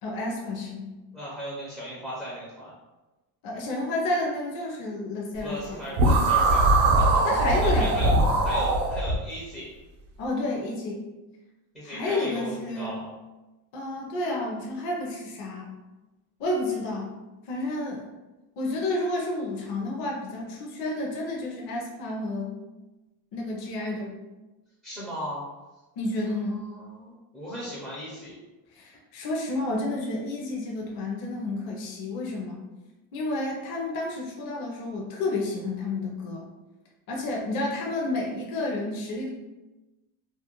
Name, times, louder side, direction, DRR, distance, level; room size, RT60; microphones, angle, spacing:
voice 1, 0.0-0.9 3.4-5.8 7.2-7.9 10.2-11.1 11.8-12.9 13.7-15.7 16.4-17.1 17.5-18.0 18.6-22.6 23.3-24.1 26.0-26.6 28.8-32.6 33.1-36.5 37.1-39.3, left 2 dB, 50° left, -1 dB, 0.6 m, -30 dB
voice 2, 1.1-2.7 5.4-8.1 8.4-9.7 11.7-13.1 24.8-25.4 26.2-28.3, equal, ahead, -10 dB, 0.4 m, -36 dB
sound 1, 6.0-9.2, right 2 dB, 65° right, 0.6 m, -21 dB
2.4 x 2.0 x 2.9 m, 1.1 s
cardioid pair, 150°, 44 cm